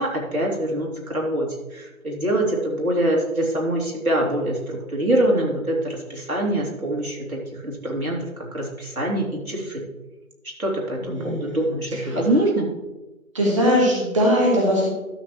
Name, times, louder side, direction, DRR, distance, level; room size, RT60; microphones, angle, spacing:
voice 1, 0.0-9.8 10.6-12.7, right 1 dB, 80° right, -2 dB, 3.2 m, -24 dB
voice 2, 11.0-12.3 13.3-14.9, equal, 20° right, -3 dB, 1.4 m, -21 dB
12.5 x 7.2 x 3.2 m, 1.1 s
figure-of-eight pair, 160°, 42 cm